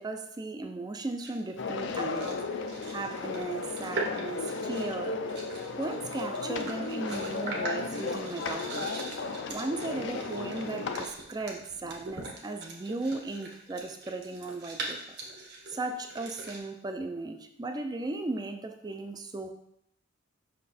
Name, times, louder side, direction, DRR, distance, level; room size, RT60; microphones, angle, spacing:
voice 1, 0.0-2.4 2.9-5.2 5.8-9.0 9.5-15.0 15.7-19.5, right 2 dB, 20° right, 7 dB, 0.4 m, -36 dB
sound 1, 1.2-1.5 1.9-2.4 2.7-16.6, right 2 dB, 50° right, 1.2 m, -41 dB
sound 2, 1.6-11.1, left 4 dB, 55° left, 0.5 m, -35 dB
5.7 x 4.3 x 4.1 m, 0.75 s
head